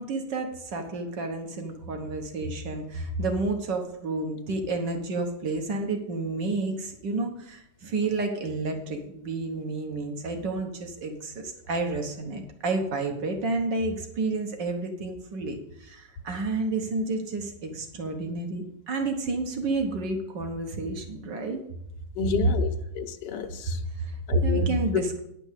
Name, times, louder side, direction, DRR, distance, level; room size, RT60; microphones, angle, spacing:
voice 1, 0.0-21.6 23.6-25.2, right 2 dB, 80° right, 2.0 m, -30 dB
voice 2, 22.2-23.8 24.3-24.7 24.9-25.0, left 6 dB, 80° left, 1.4 m, -30 dB
9.9 x 5.3 x 8.1 m
omnidirectional pair, 1.9 m